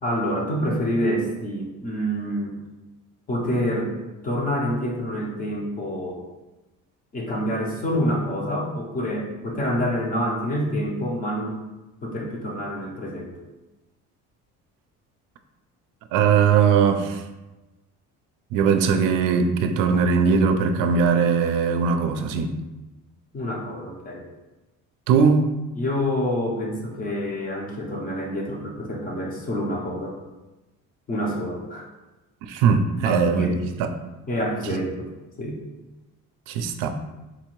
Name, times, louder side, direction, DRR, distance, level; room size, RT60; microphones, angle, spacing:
voice 1, 0.0-2.6 3.3-3.9 4.2-6.2 7.1-11.6 12.0-13.3 23.3-24.3 25.8-30.2 31.1-31.9 33.0-33.8 34.3-35.1 35.4-35.6, equal, 25° left, 0.6 m, -27 dB
voice 2, 16.1-17.2 18.5-22.5 25.1-25.5 32.4-33.5 33.8-33.9 36.5-36.9, right 6 dB, 75° right, 0.5 m, -20 dB
4.0 x 2.7 x 3.0 m
cardioid pair, 155°, 33 cm